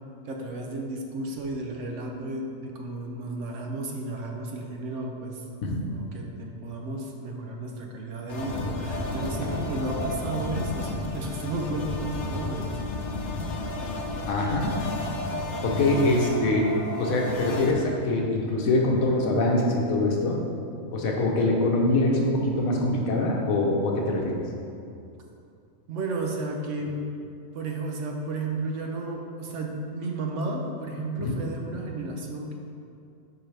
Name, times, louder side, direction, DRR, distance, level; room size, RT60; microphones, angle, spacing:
voice 1, 0.3-5.4 5.9-12.7 25.9-27.1 27.5-32.5, right 2 dB, 65° right, 1 dB, 0.9 m, -33 dB
sound 1, 8.3-17.7, left 2 dB, 65° left, 0.9 m, -32 dB
voice 2, 14.3-14.7 15.6-16.7 17.0-20.4 20.9-24.4 31.2-31.3, left 2 dB, 80° left, 0 dB, 1.3 m, -24 dB
7.4 x 4.7 x 3.3 m, 2.5 s
omnidirectional pair, 1.5 m